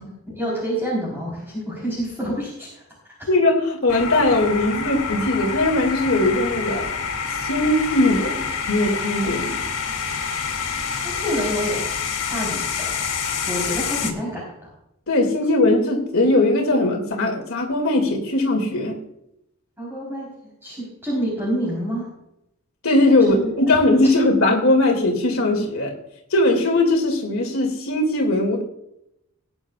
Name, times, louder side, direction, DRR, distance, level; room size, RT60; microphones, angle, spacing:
voice 1, 0.0-2.8 3.1-3.2 11.0-11.8 12.3-13.0 13.5-14.7 19.8-22.2 23.2-23.8 24.0-24.1, equal, 10° right, -5 dB, 4.1 m, -28 dB
voice 2, 3.3-6.9 7.3-9.6 15.1-19.0 22.8-25.9 26.3-28.6, left 2 dB, 65° left, 1 dB, 2.5 m, -19 dB
sound 1, 3.9-14.1, left 6 dB, 85° left, 3.0 m, -27 dB
19.5 x 9.8 x 2.4 m, 0.81 s
head